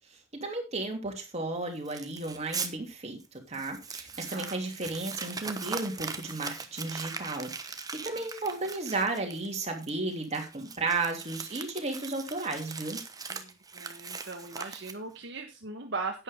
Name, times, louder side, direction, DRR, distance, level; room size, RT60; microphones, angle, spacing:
voice 1, 0.3-3.2 3.5-13.0, right 3 dB, 35° right, 2 dB, 3.0 m, -34 dB
Crumpling crinkling, 1.9-2.7 3.2-3.3 3.5-15.2, right 5 dB, 20° right, 1.1 m, -40 dB
voice 2, 4.3-4.6 13.3-16.2, right 3 dB, 60° right, 3 dB, 1.4 m, -39 dB
11.0 x 9.5 x 3.7 m, 0.26 s
head